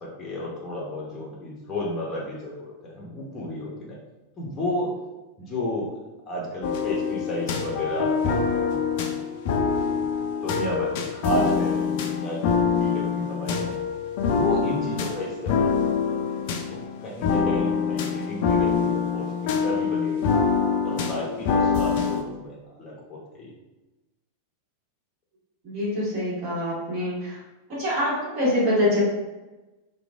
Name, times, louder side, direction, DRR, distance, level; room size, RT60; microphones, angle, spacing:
voice 1, 0.0-4.0 4.4-4.9 5.4-5.9 6.3-9.2 9.5-9.7 9.9-13.8 14.2-19.3 19.6-20.5 20.8-23.6, left 1 dB, 20° left, -4 dB, 0.7 m, -33 dB
sound 1, 6.6-22.2, left 6 dB, 50° left, 0.3 m, -25 dB
voice 2, 25.6-27.4 27.7-29.0, left 1 dB, 40° right, -8 dB, 1.5 m, -25 dB
2.9 x 2.2 x 2.4 m, 1.1 s
figure-of-eight pair, 90°, 0 cm